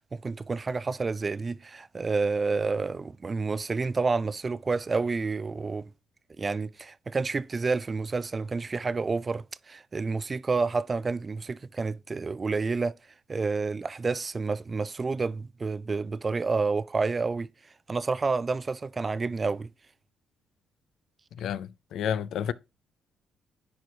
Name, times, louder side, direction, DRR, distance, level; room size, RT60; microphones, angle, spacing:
voice 1, 0.1-5.9 6.4-13.0 13.3-17.5 17.9-19.7, right 4 dB, 30° right, 0.4 m, -29 dB
voice 2, 21.4-22.5, left 9 dB, 75° left, 0.4 m, -30 dB
10.0 x 4.7 x 2.8 m
cardioid pair, 90°, 0 cm